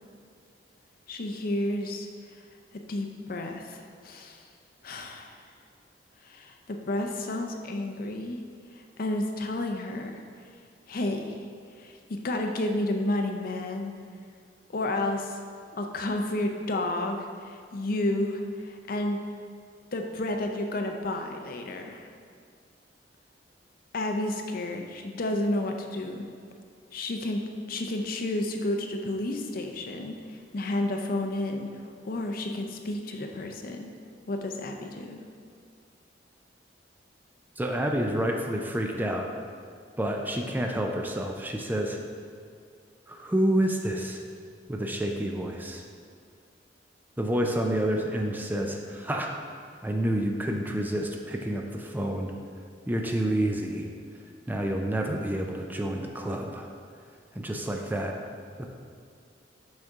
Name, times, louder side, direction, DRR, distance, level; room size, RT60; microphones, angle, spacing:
voice 1, 1.1-2.1 2.7-4.5 4.8-5.4 6.2-8.4 8.7-10.2 10.9-11.4 11.8-13.9 14.7-15.4 15.7-19.2 19.9-22.1 23.9-26.3 26.9-27.4 27.7-31.7 32.0-33.9 34.3-35.2, left 1 dB, 50° left, 4 dB, 0.5 m, -31 dB
voice 2, 37.6-39.3 40.0-42.0 43.1-44.2 44.7-45.8 47.2-49.3 49.8-52.3 52.9-53.9 54.5-56.7 57.3-58.2 58.6-58.7, right 1 dB, 10° right, 2 dB, 0.4 m, -29 dB
6.4 x 5.9 x 3.6 m, 2.2 s
head